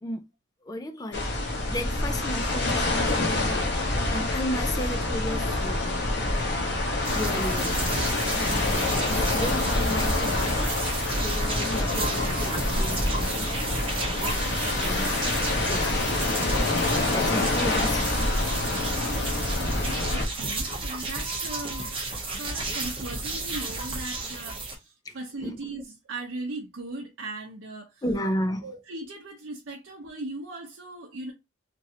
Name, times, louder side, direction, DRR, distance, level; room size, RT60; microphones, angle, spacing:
voice 1, 0.6-1.3 1.7-3.7 4.1-6.5 7.1-10.8 11.2-13.7 14.2-15.3 15.7-16.1 17.1-18.1 20.6-20.8 25.0-25.2 25.4-25.6 28.0-28.7, left 1 dB, 20° left, 0.3 m, -34 dB
sound 1, 1.1-20.2, left 2 dB, 55° left, 0.8 m, -26 dB
sound 2, 7.0-24.7, right 2 dB, 25° right, 0.7 m, -32 dB
voice 2, 20.1-21.9 22.2-28.0 28.6-31.3, right 2 dB, 70° right, 0.7 m, -38 dB
3.0 x 2.5 x 2.7 m
head